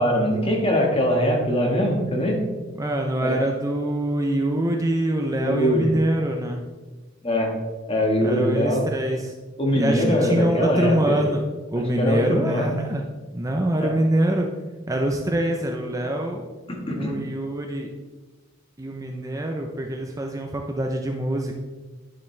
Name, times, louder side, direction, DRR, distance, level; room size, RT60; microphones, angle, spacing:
voice 1, 0.0-2.4 3.2-3.4 5.4-5.9 7.2-7.6 7.9-8.8 9.6-11.2 12.0-12.7 13.8-13.9 16.7-17.1, equal, 25° left, 1 dB, 1.5 m, -22 dB
voice 2, 2.8-6.7 8.2-9.3 9.7-11.4 11.7-13.1 13.3-14.5 14.9-16.4 17.0-17.9 18.8-21.5, right 1 dB, 15° right, 2 dB, 0.6 m, -24 dB
10.0 x 7.2 x 3.3 m, 1.3 s
head